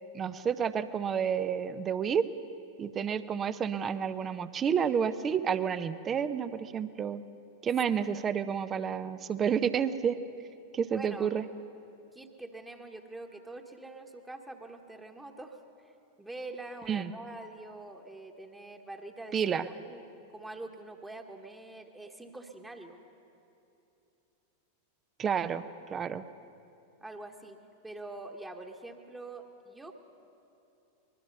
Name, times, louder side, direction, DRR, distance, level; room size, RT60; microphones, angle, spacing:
voice 1, 0.1-2.3 2.8-7.2 7.6-10.2 10.7-11.4 16.9-17.1 19.3-19.6 25.2-25.6 25.9-26.2, right 7 dB, 25° right, 14 dB, 0.7 m, -30 dB
voice 2, 10.8-11.3 12.1-20.0 20.3-23.0 27.0-29.9, right 2 dB, 10° right, 4 dB, 1.4 m, -45 dB
23.5 x 21.5 x 5.4 m, 2.9 s
figure-of-eight pair, 90°, 0 cm